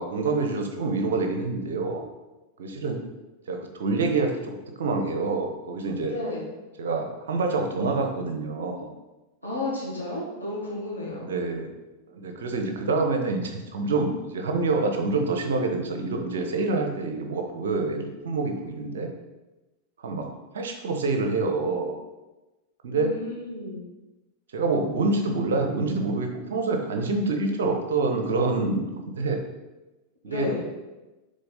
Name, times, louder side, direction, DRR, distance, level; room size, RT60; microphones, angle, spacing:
voice 1, 0.0-2.0 2.6-3.0 3.5-6.1 6.8-8.9 11.1-11.7 12.1-19.1 20.0-20.3 20.5-22.0 22.8-23.1 24.5-29.4 30.2-30.5, right 3 dB, 60° right, 4 dB, 1.0 m, -27 dB
voice 2, 6.0-6.4 9.4-11.3 22.9-23.8 30.2-30.6, left 2 dB, 85° left, -6 dB, 2.1 m, -32 dB
6.9 x 3.8 x 4.1 m, 1.1 s
figure-of-eight pair, 90°, 0 cm